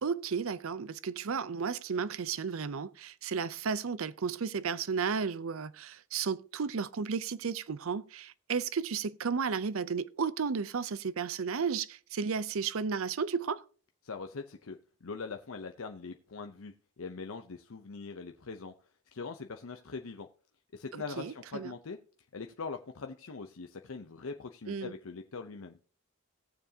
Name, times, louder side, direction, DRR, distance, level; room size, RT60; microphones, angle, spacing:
voice 1, 0.0-13.6 21.2-21.7 24.7-24.9, right 5 dB, 75° right, 0.5 m, -33 dB
voice 2, 14.0-18.7 19.1-20.3 20.7-22.0 22.3-25.7, left 4 dB, 75° left, 0.7 m, -42 dB
18.5 x 7.0 x 2.8 m
head